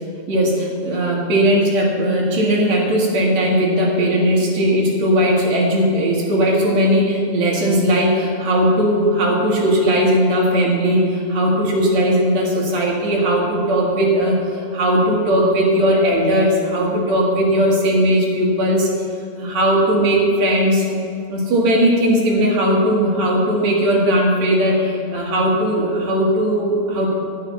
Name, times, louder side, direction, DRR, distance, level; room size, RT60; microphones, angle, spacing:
voice 1, 0.3-18.9 19.4-20.9 21.3-27.1, equal, 60° right, -2 dB, 3.2 m, -18 dB
11.0 x 9.9 x 5.8 m, 2.7 s
omnidirectional pair, 3.7 m